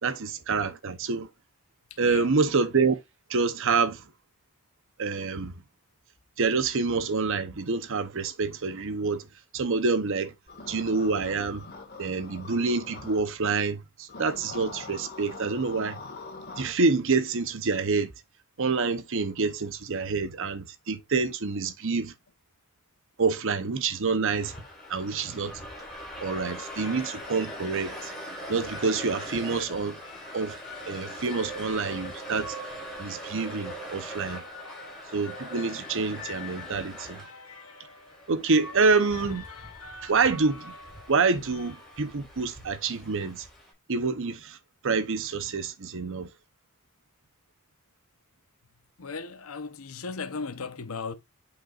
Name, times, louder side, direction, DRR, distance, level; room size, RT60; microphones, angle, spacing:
voice 1, 0.0-1.3 2.0-3.0 3.3-4.0 5.0-5.5 6.4-9.3 9.5-10.3 10.7-11.6 12.0-16.0 16.6-18.1 18.6-22.1 23.2-24.6 24.9-25.6 26.2-28.1 28.5-30.0 30.3-30.5 30.9-32.5 33.0-34.4 35.1-37.2 38.3-39.4 40.0-40.7 41.1-43.5 43.9-44.6 44.8-46.3, right 4 dB, 65° right, 0.8 m, -27 dB
voice 2, 1.9-2.3 36.7-36.9 49.0-51.1, left 4 dB, 75° left, 0.9 m, -37 dB
sound 1, 10.5-13.2 14.1-16.7, left 3 dB, 50° left, 1.9 m, -43 dB
sound 2, 24.4-43.7, equal, ahead, 4.5 m, -42 dB
sound 3, 26.6-42.4, left 3 dB, 90° left, 1.7 m, -46 dB
9.0 x 5.2 x 2.5 m
head